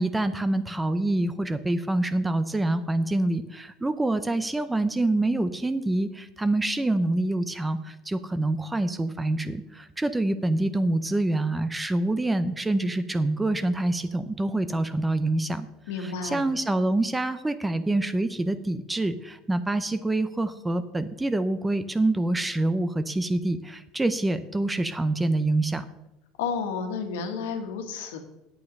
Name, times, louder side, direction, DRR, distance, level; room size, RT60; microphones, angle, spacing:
voice 1, 0.0-15.7 16.0-25.8, right 2 dB, 10° right, 12 dB, 0.5 m, -26 dB
voice 2, 15.9-16.4 26.4-28.2, left 5 dB, 90° left, 6 dB, 1.6 m, -31 dB
8.8 x 8.3 x 5.3 m, 0.91 s
supercardioid pair, 120°, 0 cm